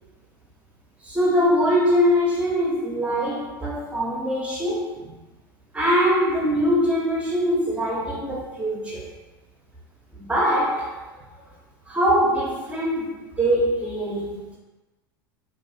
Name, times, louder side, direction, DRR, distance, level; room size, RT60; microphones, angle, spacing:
voice 1, 1.0-5.1 5.7-9.1 10.2-10.9 11.9-14.4, equal, 10° right, -4 dB, 0.8 m, -22 dB
2.6 x 2.3 x 2.8 m, 1.1 s
figure-of-eight pair, 85°, 12 cm